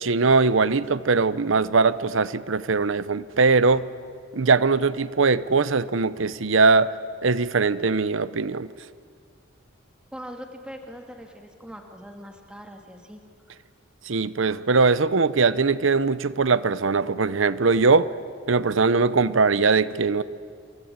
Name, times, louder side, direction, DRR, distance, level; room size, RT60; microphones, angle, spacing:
voice 1, 0.0-3.8 4.3-6.9 7.2-8.7 14.1-18.1 18.5-20.2, right 4 dB, 70° right, 16 dB, 0.8 m, -21 dB
voice 2, 10.1-13.2 13.5-13.6, equal, 5° right, 3 dB, 2.3 m, -41 dB
28.0 x 23.5 x 8.8 m, 2.2 s
head